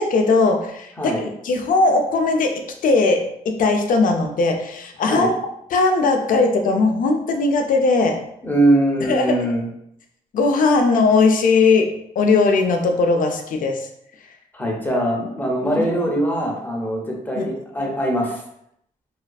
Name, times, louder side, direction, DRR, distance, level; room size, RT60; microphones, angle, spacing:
voice 1, 0.0-5.3 5.7-8.2 9.0-9.5 10.3-13.9 15.6-15.9 17.3-17.5, left 3 dB, 65° left, 4 dB, 0.4 m, -19 dB
voice 2, 8.4-9.6 14.5-18.4, right 1 dB, 10° left, -1 dB, 0.6 m, -22 dB
2.4 x 2.3 x 2.3 m, 0.75 s
cardioid pair, 90°, 15 cm